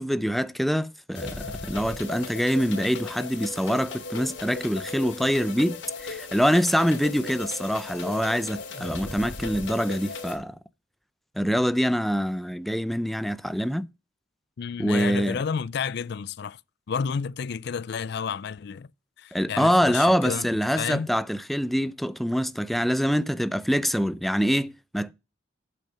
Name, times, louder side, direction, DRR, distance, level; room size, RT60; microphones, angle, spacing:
voice 1, 0.0-10.5 11.4-13.9 14.8-15.4 19.3-25.1, equal, ahead, 0.5 m, -25 dB
sound 1, 1.1-10.4, left 3 dB, 75° left, 3.2 m, -37 dB
voice 2, 14.6-16.6 16.9-18.9 19.2-20.5 20.8-21.1, left 6 dB, 60° left, 0.4 m, -31 dB
8.7 x 6.3 x 5.7 m
head